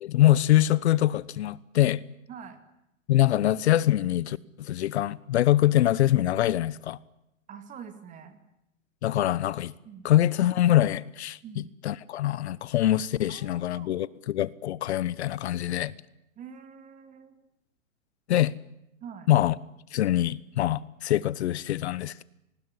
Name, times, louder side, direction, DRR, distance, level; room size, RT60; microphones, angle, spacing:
voice 1, 0.0-2.0 3.1-7.0 9.0-9.7 10.0-15.9 18.3-18.5 19.3-19.5 19.9-22.2, left 13 dB, 55° left, 1.0 m, -24 dB
voice 2, 2.3-2.6 7.5-8.4 9.8-10.1 11.4-11.8 13.3-14.0 16.4-17.4 19.0-19.3, right 7 dB, 20° right, 2.3 m, -45 dB
27.0 x 20.0 x 9.7 m
hypercardioid pair, 155°, 39 cm